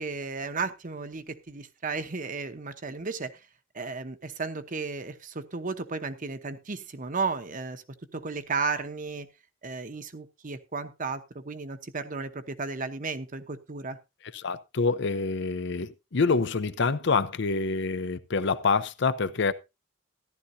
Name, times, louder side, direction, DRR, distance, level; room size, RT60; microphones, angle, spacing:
voice 1, 0.0-3.3 3.7-7.8 8.1-9.3 9.6-14.0, right 4 dB, 45° right, 0.9 m, -34 dB
voice 2, 14.3-19.5, left 4 dB, 65° left, 0.7 m, -26 dB
14.0 x 11.5 x 2.7 m
head